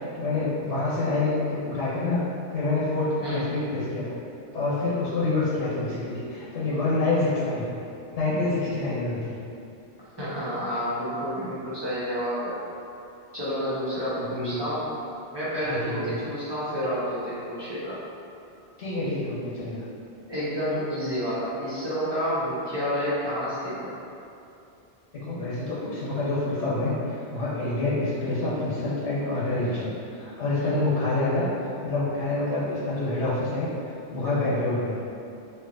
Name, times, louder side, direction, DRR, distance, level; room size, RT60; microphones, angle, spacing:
voice 1, 0.1-2.2 2.5-4.1 4.5-7.7 8.1-9.4 11.4-11.5 14.3-14.6 15.6-16.0 18.8-19.8 25.2-31.5 31.8-33.7 34.1-35.0, left 2 dB, 85° left, -8 dB, 1.2 m, -27 dB
voice 2, 10.2-12.5 13.3-14.8 15.3-18.0 20.3-23.9 30.6-30.9 34.2-34.5, equal, 25° right, -11 dB, 0.9 m, -29 dB
2.9 x 2.5 x 3.8 m, 2.7 s
omnidirectional pair, 1.2 m